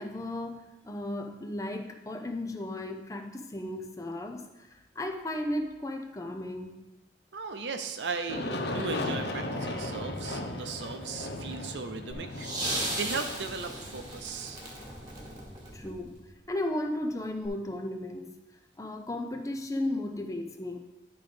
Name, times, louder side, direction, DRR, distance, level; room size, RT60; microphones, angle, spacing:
voice 1, 0.0-6.8 15.7-16.2 16.5-18.4 18.8-20.8, left 1 dB, 20° left, 4 dB, 0.6 m, -35 dB
voice 2, 7.3-14.6, right 4 dB, 90° right, 7 dB, 0.7 m, -37 dB
Aircraft, 8.3-15.0, left 1 dB, 70° left, 0.8 m, -36 dB
sound 1, 12.1-16.3 17.4-17.5, right 1 dB, 20° right, 1.6 m, -36 dB
10.5 x 3.8 x 5.1 m, 1.1 s
head